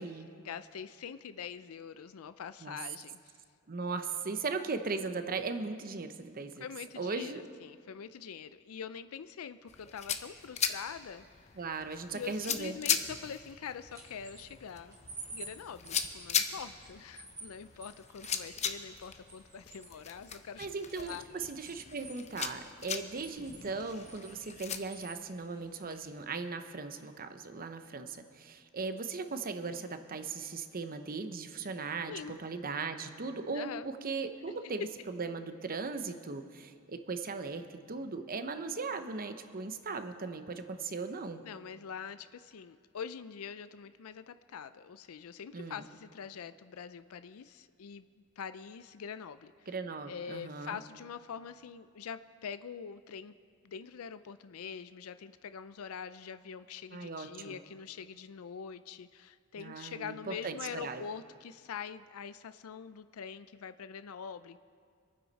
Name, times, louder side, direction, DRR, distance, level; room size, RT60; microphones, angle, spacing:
voice 1, 0.4-3.3 6.6-11.5 12.1-15.0 15.3-20.7 21.0-21.2 32.1-32.3 33.5-33.9 41.4-48.1 48.4-49.7 50.1-53.3 53.6-64.6, left 7 dB, 75° left, 13 dB, 0.4 m, -44 dB
voice 2, 3.7-6.6 7.0-7.4 11.6-12.8 20.6-41.4 45.5-45.8 49.7-50.8 56.9-57.6 59.6-61.0, right 4 dB, 40° right, 9 dB, 0.8 m, -38 dB
sound 1, 9.7-24.8, left 7 dB, 30° left, 0.6 m, -39 dB
sound 2, 13.8-26.1, right 3 dB, 15° right, 2.7 m, -53 dB
25.5 x 9.5 x 4.1 m, 2.2 s
head